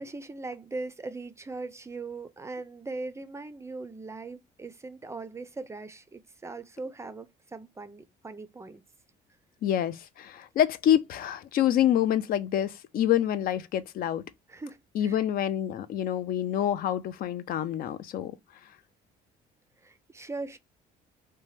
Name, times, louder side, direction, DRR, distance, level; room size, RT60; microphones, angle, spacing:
voice 1, 0.0-8.8 14.5-15.2 19.8-20.6, right 3 dB, 15° right, 0.4 m, -40 dB
voice 2, 9.6-14.2 14.9-18.3, left 11 dB, 60° left, 0.4 m, -27 dB
2.8 x 2.2 x 3.2 m
cardioid pair, 110°, 17 cm